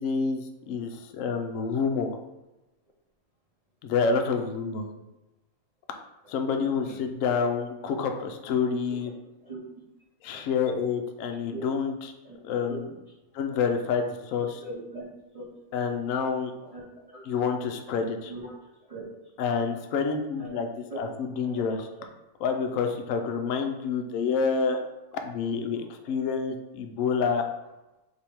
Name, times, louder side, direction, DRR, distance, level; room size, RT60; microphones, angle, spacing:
voice 1, 0.0-2.2 3.8-4.9 6.3-9.1 10.2-11.9 12.4-12.9 13.3-14.5 15.7-16.5 17.3-18.3 19.4-21.9 22.4-24.8 25.2-27.5, left 5 dB, 70° left, 4 dB, 0.8 m, -28 dB
voice 2, 14.6-15.1 15.3-15.5 16.6-17.2 17.9-19.0 20.4-21.0 21.4-21.6 23.6-23.7 26.1-26.2, right 2 dB, 70° right, -5 dB, 0.3 m, -42 dB
3.4 x 2.7 x 4.3 m, 0.99 s
omnidirectional pair, 1.6 m